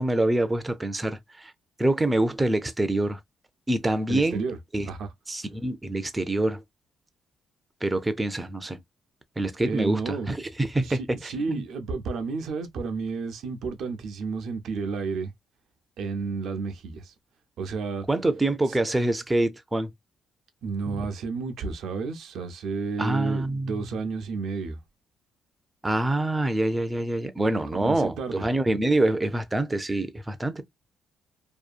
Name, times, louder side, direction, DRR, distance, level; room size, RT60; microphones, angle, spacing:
voice 1, 0.0-1.5 1.8-3.2 3.7-4.4 4.7-4.9 5.3-6.6 7.8-8.8 9.4-11.6 18.1-19.9 23.0-23.8 25.8-30.6, right 1 dB, 15° right, 0.4 m, -26 dB
voice 2, 4.1-4.6 4.8-5.1 9.6-10.3 10.8-15.3 16.0-17.1 17.6-18.1 20.6-24.8 27.8-28.4, right 4 dB, 75° right, 0.5 m, -31 dB
2.7 x 2.3 x 2.4 m
cardioid pair, 90°, 0 cm